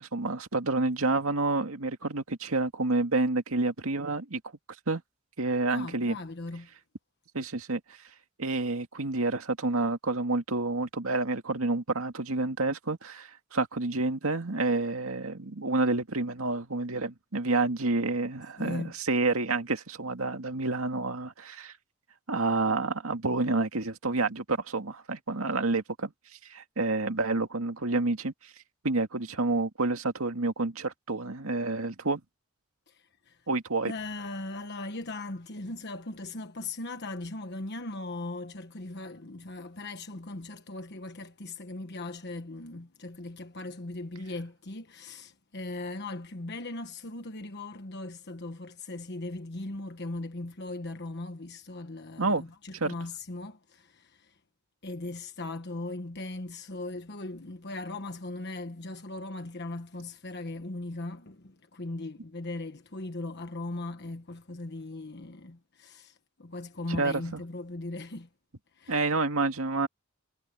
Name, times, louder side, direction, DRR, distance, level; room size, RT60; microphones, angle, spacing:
voice 1, 0.0-4.4 4.9-5.0 5.4-6.2 7.3-7.8 8.4-21.7 22.3-26.1 26.5-28.3 28.8-32.2 33.5-33.9 52.2-52.4 52.8-52.9 66.9-67.4 68.9-69.9, right 3 dB, 90° right, 2.1 m, -29 dB
voice 2, 5.7-6.7 18.6-18.9 32.9-33.5 33.8-54.4 54.8-68.3 68.7-69.0, left 2 dB, 55° left, 1.3 m, -39 dB
head